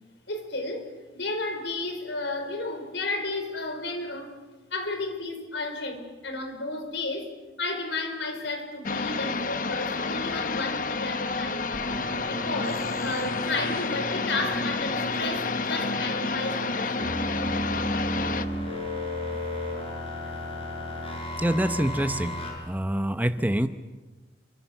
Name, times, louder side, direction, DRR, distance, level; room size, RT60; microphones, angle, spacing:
voice 1, 0.3-0.9 1.1-4.3 4.7-7.3 7.6-11.8 12.2-17.2, left 2 dB, 85° left, 6 dB, 5.0 m, -33 dB
sound 1, 8.8-18.4, left 4 dB, 45° left, 1.0 m, -30 dB
sound 2, 11.7-22.5, left 1 dB, 30° left, 7.5 m, -35 dB
voice 2, 21.4-22.4 22.7-23.7, right 1 dB, 10° right, 10 dB, 0.9 m, -25 dB
29.0 x 25.0 x 7.2 m, 1.2 s
head